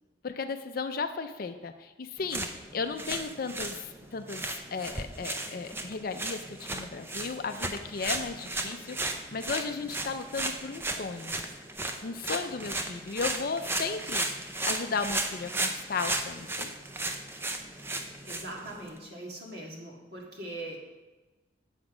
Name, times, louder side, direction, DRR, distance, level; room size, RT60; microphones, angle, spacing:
voice 1, 0.2-2.5 2.7-3.8 4.1-4.4 4.7-11.4 12.0-16.8, left 4 dB, 45° left, 8 dB, 0.4 m, -35 dB
sound 1, 2.2-19.0, right 2 dB, 10° right, 0.5 m, -35 dB
voice 2, 18.2-20.8, right 1 dB, 50° right, -2 dB, 1.9 m, -41 dB
7.8 x 7.2 x 4.9 m, 1.1 s
head